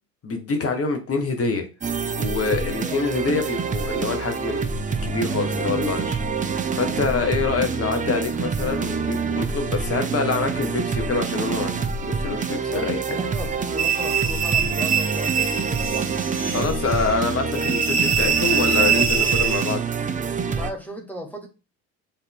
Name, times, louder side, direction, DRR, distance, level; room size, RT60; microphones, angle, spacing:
voice 1, 0.2-1.6 2.2-13.0 16.5-19.8, left 4 dB, 30° left, 1.7 m, -26 dB
sound 1, 1.8-20.7, right 5 dB, 15° right, 0.6 m, -26 dB
voice 2, 5.2-6.0 6.8-7.0 12.7-16.6 20.4-21.5, left 1 dB, 5° left, 1.6 m, -36 dB
sound 2, 13.8-19.7, right 7 dB, 35° right, 2.3 m, -24 dB
7.1 x 3.9 x 3.7 m
figure-of-eight pair, 60°, 48 cm